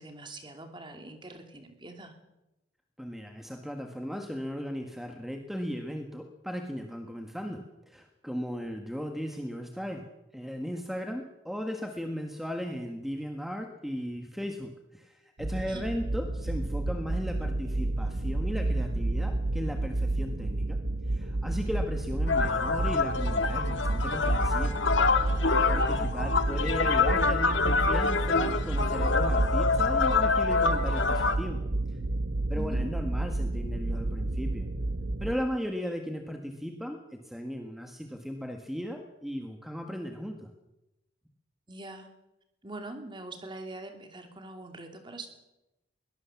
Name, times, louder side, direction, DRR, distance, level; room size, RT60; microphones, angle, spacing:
voice 1, 0.0-2.1 15.7-15.9 25.7-26.1 32.5-32.8 41.7-42.1 42.6-45.3, right 2 dB, 25° right, 5 dB, 2.9 m, -43 dB
voice 2, 3.0-10.0 10.3-20.8 21.1-24.8 25.7-31.6 31.9-32.0 32.5-34.7 35.2-40.5, equal, ahead, 4 dB, 1.6 m, -36 dB
sound 1, 15.4-35.4, right 2 dB, 70° right, 1.1 m, -30 dB
sound 2, 22.3-31.4, left 4 dB, 80° left, 1.6 m, -26 dB
22.5 x 18.0 x 7.2 m, 0.96 s
head